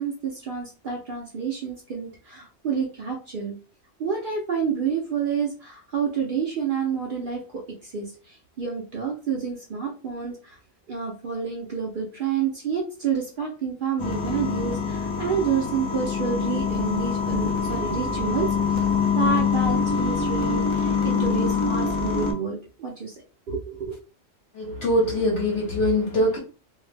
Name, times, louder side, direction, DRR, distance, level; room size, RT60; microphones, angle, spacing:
voice 1, 0.0-3.6 4.0-10.6 10.9-18.9 19.1-24.0, right 6 dB, 60° right, 0.5 m, -29 dB
sound 1, 14.0-22.3, left 5 dB, 45° left, 0.4 m, -25 dB
voice 2, 24.5-26.4, left 1 dB, 65° left, 1.1 m, -23 dB
2.6 x 2.0 x 3.2 m
omnidirectional pair, 1.3 m